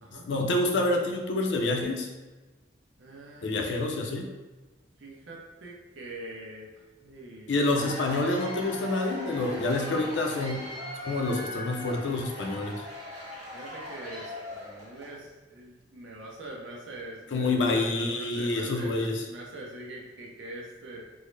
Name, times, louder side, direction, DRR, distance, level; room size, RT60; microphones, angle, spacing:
voice 1, 0.3-2.1 3.4-4.3 7.5-10.7 11.0-12.9 17.3-19.2, left 2 dB, 70° left, 2 dB, 0.5 m, -27 dB
voice 2, 3.0-4.3 5.0-6.7 7.0-7.9 9.3-9.9 13.5-21.0, right 1 dB, 80° right, -2 dB, 0.7 m, -44 dB
Cheering / Applause / Crowd, 7.5-15.2, equal, 40° right, 1.1 m, -40 dB
3.6 x 2.0 x 3.2 m, 1.2 s
head